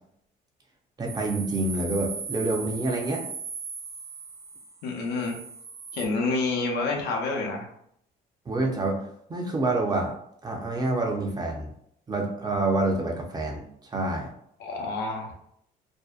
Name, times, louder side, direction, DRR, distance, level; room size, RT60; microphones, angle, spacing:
voice 1, 1.0-3.2 8.5-9.0 9.3-10.1 10.4-11.7 12.1-14.3, right 2 dB, 25° right, 1 dB, 0.5 m, -27 dB
sound 1, 1.1-6.1, right 5 dB, 80° right, 0.5 m, -38 dB
voice 2, 4.8-5.4 5.9-7.7 14.6-15.3, left 3 dB, 80° left, 1 dB, 0.6 m, -28 dB
2.6 x 2.1 x 2.3 m, 0.71 s
cardioid pair, 110°, 17 cm